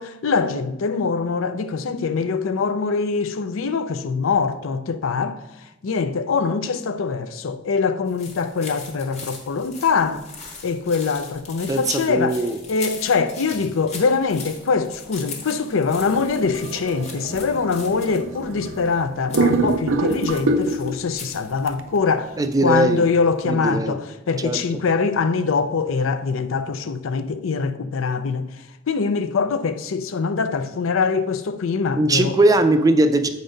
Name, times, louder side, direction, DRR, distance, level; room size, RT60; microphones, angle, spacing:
voice 1, 0.0-10.3 10.6-12.4 12.7-32.4, left 5 dB, 80° left, 0.5 m, -23 dB
sound 1, 8.1-21.7, left 4 dB, 35° left, 1.2 m, -40 dB
voice 2, 11.7-12.6 22.4-23.0 23.5-24.0 24.4-24.6 32.0-33.3, right 2 dB, 20° right, 0.4 m, -19 dB
sound 2, 16.0-19.0 19.3-21.1 21.7-21.8, right 2 dB, 80° right, 0.6 m, -25 dB
7.9 x 4.0 x 5.1 m
head